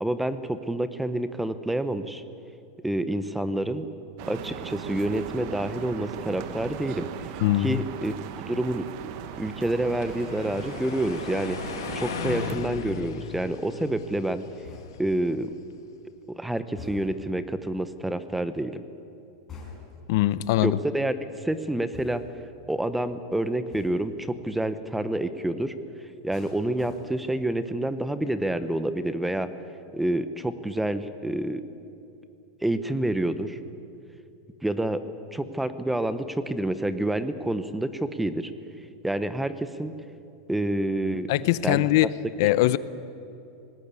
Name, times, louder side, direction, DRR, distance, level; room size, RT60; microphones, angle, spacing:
voice 1, 0.0-2.2 2.8-3.9 4.3-7.1 7.6-8.1 8.5-9.1 9.4-11.6 11.9-14.4 15.0-15.5 16.3-18.8 20.6-22.2 22.7-25.7 26.2-29.5 29.9-31.6 32.6-33.6 34.6-35.0 35.3-38.5 39.0-39.9 40.5-41.3 41.6-42.1, right 1 dB, 5° right, 12 dB, 0.7 m, -28 dB
sound 1, 4.2-12.6, right 9 dB, 45° right, 1.1 m, -38 dB
voice 2, 7.4-7.8 20.1-20.8 41.3-42.1 42.4-42.8, left 16 dB, 55° left, 17 dB, 0.6 m, -22 dB
sound 2, 9.5-15.6, left 8 dB, 85° left, 1.4 m, -37 dB
sound 3, 14.6-15.2 16.8-17.3 19.5-20.1 21.9-22.5 23.7-24.2 26.3-27.4 27.8-28.2, left 5 dB, 15° left, 5.0 m, -45 dB
19.5 x 17.0 x 9.7 m, 2.8 s
supercardioid pair, 165°, 2 cm